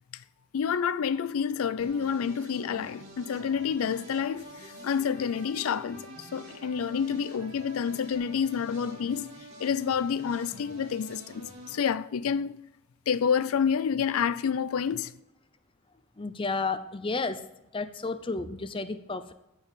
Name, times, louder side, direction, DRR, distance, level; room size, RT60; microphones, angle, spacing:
voice 1, 0.5-9.3 9.6-12.6 13.1-15.1, left 7 dB, 75° left, 0.4 m, -29 dB
sound 1, 1.8-11.8, equal, 55° right, 2.9 m, -47 dB
voice 2, 16.2-17.5 17.7-19.3, left 3 dB, 25° left, 0.5 m, -32 dB
13.5 x 4.6 x 7.6 m
head